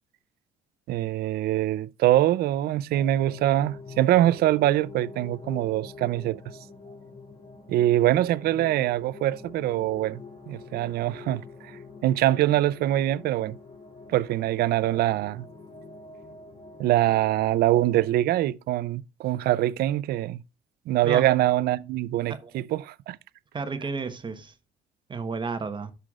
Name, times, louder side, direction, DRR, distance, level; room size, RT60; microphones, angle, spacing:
voice 1, 0.9-6.4 7.7-10.2 10.5-13.6 14.1-15.4 16.8-20.4 20.9-23.2, right 14 dB, 65° right, 0.5 m, -24 dB
sound 1, 2.9-18.1, left 3 dB, 40° left, 2.7 m, -45 dB
voice 2, 23.5-24.5 25.1-25.9, right 4 dB, 30° right, 1.1 m, -32 dB
13.5 x 5.8 x 2.4 m
cardioid pair, 110°, 17 cm